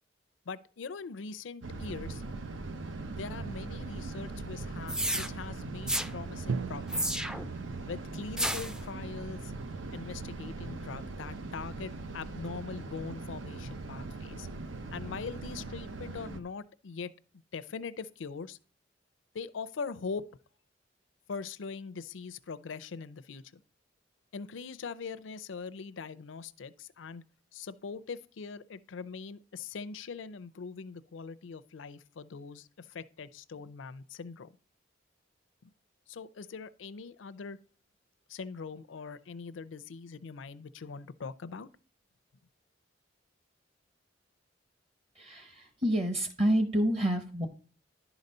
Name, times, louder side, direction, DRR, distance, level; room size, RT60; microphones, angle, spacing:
voice 1, 0.5-2.2 3.1-7.2 7.8-9.5 9.9-14.5 14.9-17.1 17.5-18.6 19.3-20.2 21.3-23.6 24.3-27.2 27.5-34.6 35.6-35.7 36.1-37.6 38.3-41.7, left 5 dB, 85° left, 0.5 m, -42 dB
sound 1, 1.6-16.4, right 3 dB, 90° right, 0.8 m, -40 dB
sound 2, 4.9-5.3 5.9-6.1 6.9-7.5 8.4-8.8, equal, 5° right, 0.3 m, -31 dB
Drum, 6.5-10.5, right 5 dB, 75° right, 0.4 m, -41 dB
voice 2, 45.2-47.5, equal, 35° right, 0.9 m, -28 dB
11.0 x 4.0 x 5.4 m
head